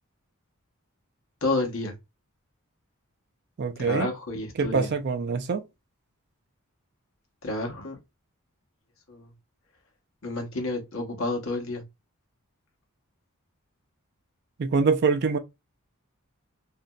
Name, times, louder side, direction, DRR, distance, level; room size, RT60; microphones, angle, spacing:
voice 1, 1.4-1.9 3.8-4.9 7.4-8.0 9.1-9.3 10.2-11.8, left 2 dB, 65° left, 0.9 m, -30 dB
voice 2, 3.6-4.1 4.6-5.6 14.6-15.4, right 4 dB, 50° right, 0.4 m, -24 dB
2.9 x 2.5 x 2.2 m
head